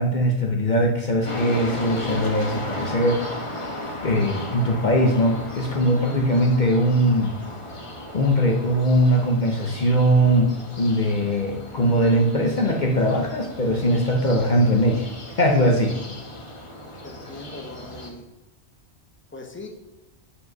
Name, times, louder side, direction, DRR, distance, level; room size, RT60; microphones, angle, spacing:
voice 1, 0.0-3.3 4.0-7.4 8.1-15.1 15.4-16.0, equal, 45° left, 2 dB, 1.0 m, -20 dB
sound 1, 1.2-18.1, left 1 dB, 30° left, 1.2 m, -35 dB
voice 2, 17.0-18.3 19.3-19.7, left 2 dB, 10° left, 2 dB, 1.1 m, -40 dB
8.5 x 5.3 x 5.4 m, 1.0 s
omnidirectional pair, 1.1 m